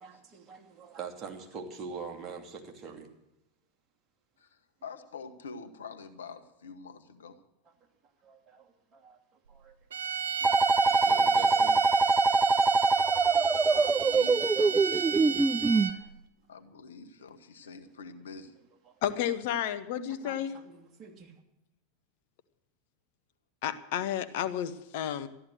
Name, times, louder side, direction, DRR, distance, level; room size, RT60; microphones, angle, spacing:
voice 1, 0.0-3.1 8.2-9.2 9.5-9.7 10.4-10.5 10.8-11.8 13.4-13.5 15.7-16.1 20.2-21.3, right 5 dB, 30° right, 3 dB, 2.7 m, -44 dB
voice 2, 4.4-7.4 13.0-13.1 13.7-14.9 16.5-18.5, left 5 dB, 80° left, 8 dB, 1.4 m, -46 dB
sound 1, 9.9-16.1, right 7 dB, 80° right, 0.7 m, -32 dB
sound 2, 10.4-15.9, right 3 dB, 15° right, 0.5 m, -24 dB
voice 3, 19.0-20.6 23.6-25.3, left 10 dB, 60° left, 12 dB, 1.1 m, -32 dB
14.0 x 11.0 x 7.7 m, 0.87 s
hypercardioid pair, 90°, 0 cm